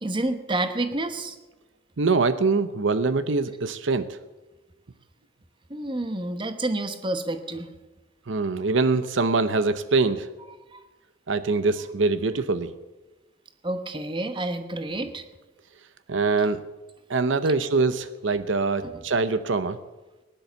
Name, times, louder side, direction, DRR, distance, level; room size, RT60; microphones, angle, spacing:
voice 1, 0.0-1.3 5.7-7.7 10.7-10.8 13.6-15.2 17.5-17.6 18.8-18.9, right 2 dB, 25° right, 9 dB, 1.0 m, -29 dB
voice 2, 2.0-4.2 8.3-10.3 11.3-12.8 16.1-16.6 17.1-19.8, right 3 dB, 70° right, 12 dB, 0.7 m, -23 dB
18.0 x 10.5 x 6.9 m, 1.2 s
head